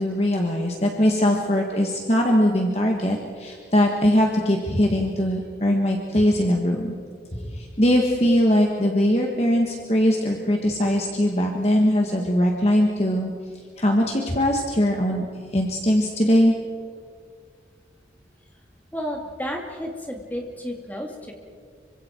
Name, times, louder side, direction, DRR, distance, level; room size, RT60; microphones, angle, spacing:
voice 1, 0.0-6.9 7.5-13.3 13.8-15.2 15.5-16.5, equal, 35° left, 1 dB, 1.7 m, -21 dB
voice 2, 18.9-21.3, equal, 10° left, 1 dB, 2.6 m, -32 dB
26.5 x 24.5 x 4.6 m, 2.1 s
head